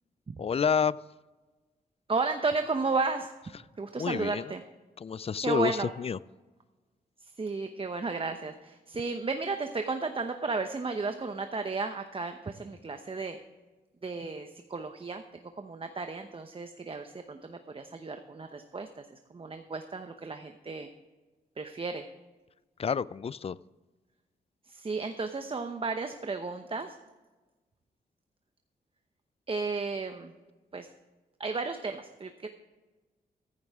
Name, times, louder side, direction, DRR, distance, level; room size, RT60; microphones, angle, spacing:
voice 1, 0.4-1.0 4.0-4.4 5.0-6.2 22.8-23.6, left 6 dB, 40° left, 20 dB, 0.4 m, -29 dB
voice 2, 2.1-3.3 3.8-4.6 5.4-5.9 7.2-13.4 14.0-15.2 15.6-20.9 21.6-22.1 24.6-27.0 29.5-30.3 30.7-30.9 31.4-32.5, right 4 dB, 35° right, 7 dB, 0.9 m, -33 dB
14.5 x 11.0 x 3.6 m, 1.2 s
cardioid pair, 65°, 16 cm